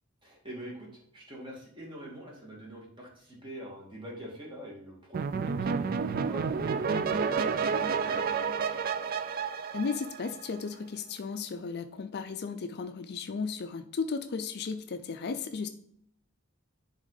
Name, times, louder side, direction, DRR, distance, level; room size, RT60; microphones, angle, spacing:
voice 1, 0.2-8.3, equal, 20° right, -3 dB, 2.2 m, -45 dB
sound 1, 5.1-10.6, right 5 dB, 40° right, 0.4 m, -30 dB
voice 2, 9.7-15.7, left 5 dB, 45° left, 9 dB, 0.4 m, -35 dB
11.0 x 3.6 x 4.0 m, 0.70 s
head